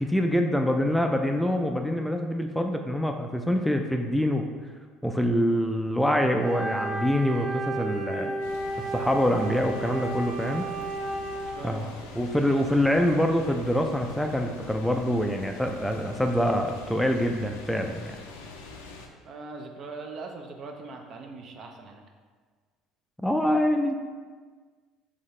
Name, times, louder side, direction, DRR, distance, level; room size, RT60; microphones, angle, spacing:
voice 1, 0.0-4.5 5.0-8.3 8.9-10.7 11.6-11.8 12.1-18.1 23.2-23.9, equal, 5° left, 3 dB, 0.4 m, -25 dB
Wind instrument woodwind instrument, 6.4-11.6, right 2 dB, 15° right, 0.9 m, -33 dB
sound 1, 8.4-19.1, left 3 dB, 85° left, 0.4 m, -44 dB
voice 2, 11.6-12.0 19.2-22.0, right 3 dB, 50° right, 3 dB, 0.5 m, -41 dB
3.9 x 3.5 x 3.2 m, 1.5 s
hypercardioid pair, 65°, 0 cm